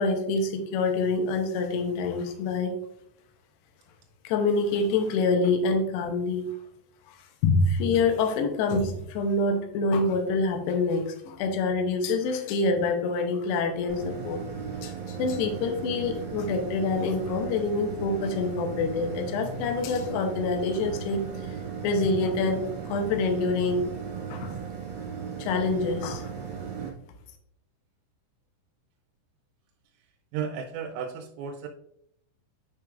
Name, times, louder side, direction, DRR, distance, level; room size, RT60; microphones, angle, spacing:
voice 1, 0.0-2.8 4.2-6.5 7.1-7.2 7.4-14.4 14.8-21.5 21.8-23.9 24.3-24.6 25.4-26.3, left 3 dB, 85° left, 4 dB, 2.5 m, -26 dB
sound 1, 13.9-26.9, right 6 dB, 60° right, 2.9 m, -36 dB
voice 2, 30.3-31.7, right 7 dB, 90° right, 3 dB, 3.1 m, -34 dB
9.0 x 4.6 x 2.4 m, 0.74 s
omnidirectional pair, 5.6 m